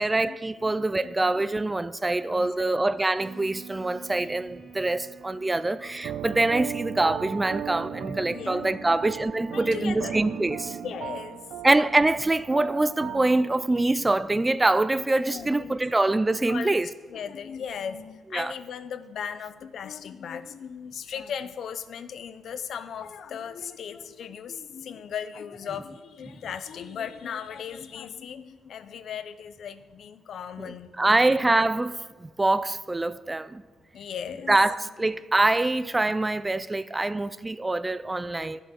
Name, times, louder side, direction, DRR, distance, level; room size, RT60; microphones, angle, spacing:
voice 1, 0.0-10.8 11.6-16.9 18.3-18.5 30.6-33.6 34.5-38.6, right 2 dB, 15° right, 0.4 m, -24 dB
voice 2, 0.7-1.6 2.2-2.8 4.1-4.2 7.9-9.0 9.5-10.2 10.8-11.4 15.1-16.0 16.5-16.8 17.1-31.4 33.9-34.6 38.3-38.6, left 7 dB, 65° left, 0.7 m, -37 dB
sound 1, 3.2-11.2, right 6 dB, 50° right, 2.8 m, -47 dB
sound 2, 6.0-13.5, right 9 dB, 75° right, 0.6 m, -37 dB
11.0 x 7.7 x 6.4 m
cardioid pair, 90°, 0 cm